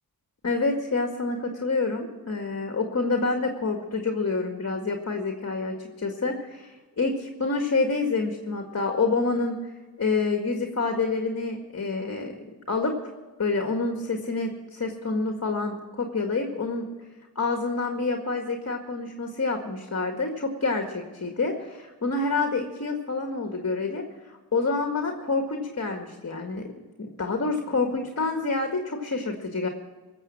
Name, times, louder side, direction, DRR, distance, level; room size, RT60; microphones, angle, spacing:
voice 1, 0.4-9.6 10.0-12.9 13.4-16.9 17.4-26.7 27.0-29.7, left 3 dB, 40° left, 3 dB, 1.9 m, -28 dB
18.0 x 7.5 x 7.3 m, 1.2 s
cardioid pair, 50°, 37 cm